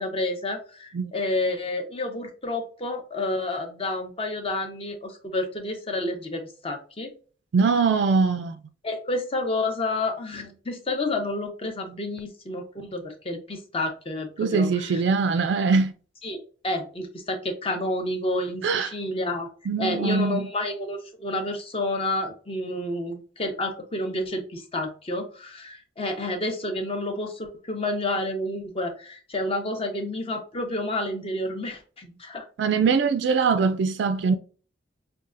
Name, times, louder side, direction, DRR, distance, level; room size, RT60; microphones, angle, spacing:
voice 1, 0.0-7.1 8.8-15.0 16.2-19.5 19.8-32.5, left 2 dB, 30° left, 0.7 m, -30 dB
voice 2, 7.5-8.6 14.4-15.9 18.6-18.9 19.7-20.5 32.6-34.4, right 5 dB, 65° right, 0.3 m, -22 dB
5.3 x 2.3 x 2.5 m
head